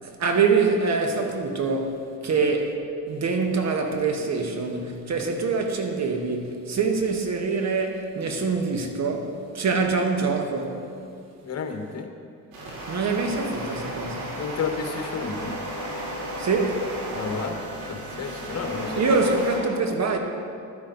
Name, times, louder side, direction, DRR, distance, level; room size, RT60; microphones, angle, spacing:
voice 1, 0.0-10.8 12.9-14.4 16.4-16.9 19.0-20.2, right 4 dB, 50° right, 1.7 m, -25 dB
voice 2, 11.4-12.1 14.1-15.5 17.1-17.6 17.9-19.0, left 5 dB, 45° left, 1.5 m, -31 dB
sound 1, 12.5-19.6, equal, 80° right, 2.9 m, -34 dB
12.5 x 10.5 x 4.1 m
supercardioid pair, 70°, 35 cm